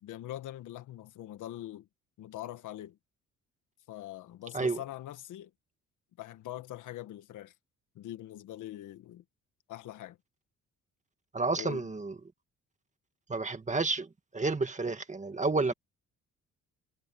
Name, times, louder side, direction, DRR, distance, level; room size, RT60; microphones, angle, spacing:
voice 1, 0.0-1.9 2.2-3.0 3.9-5.5 6.2-7.5 8.0-9.2 9.7-10.2 11.6-11.9, left 13 dB, 85° left, 1.8 m, -43 dB
voice 2, 11.3-12.1 13.3-14.1 14.3-15.7, right 3 dB, 25° right, 2.0 m, -30 dB
cardioid pair, 90°, 30 cm